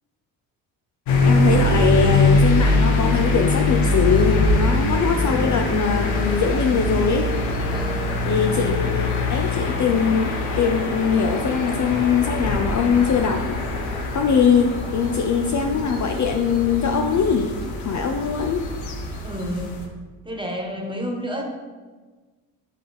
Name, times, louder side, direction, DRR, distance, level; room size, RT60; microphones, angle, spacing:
sound 1, 1.1-19.8, left 2 dB, 80° left, 1.0 m, -23 dB
voice 1, 1.2-7.3 8.3-10.3 10.6-13.6 14.1-17.5 17.8-18.7, left 6 dB, 40° left, 4 dB, 0.5 m, -21 dB
voice 2, 7.7-8.0 19.2-19.8 20.2-21.4, equal, 10° right, 1 dB, 1.4 m, -30 dB
7.5 x 3.4 x 4.0 m, 1.3 s
supercardioid pair, 60°, 47 cm